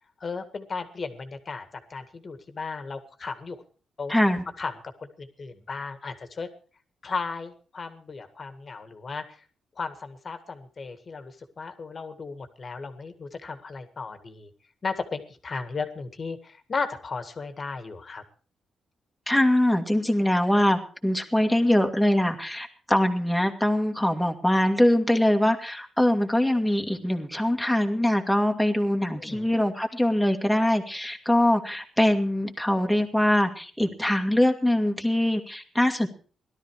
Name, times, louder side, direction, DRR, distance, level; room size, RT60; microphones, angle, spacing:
voice 1, 0.2-3.6 4.0-4.1 4.6-4.7 5.0-6.5 7.0-9.4 9.8-14.5 14.8-18.2 29.2-29.5, left 4 dB, 40° left, 9 dB, 1.9 m, -35 dB
voice 2, 4.1-4.4 19.3-36.1, left 1 dB, ahead, 3 dB, 2.0 m, -23 dB
17.5 x 12.5 x 4.8 m, 0.38 s
cardioid pair, 105°, 0 cm